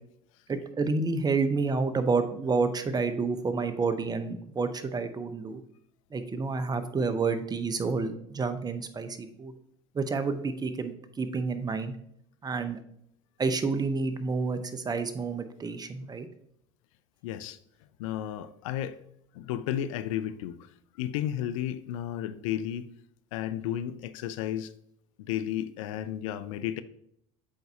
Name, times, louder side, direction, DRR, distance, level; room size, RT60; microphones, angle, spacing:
voice 1, 0.5-5.6 6.1-9.5 9.9-12.0 12.4-12.8 13.4-16.3, right 4 dB, 25° right, 0.7 m, -29 dB
voice 2, 17.2-17.6 18.0-19.0 19.3-20.7 21.0-22.9 23.3-24.7 25.2-26.8, left 11 dB, 75° left, 0.4 m, -33 dB
8.5 x 4.0 x 2.7 m
hypercardioid pair, 75°, 17 cm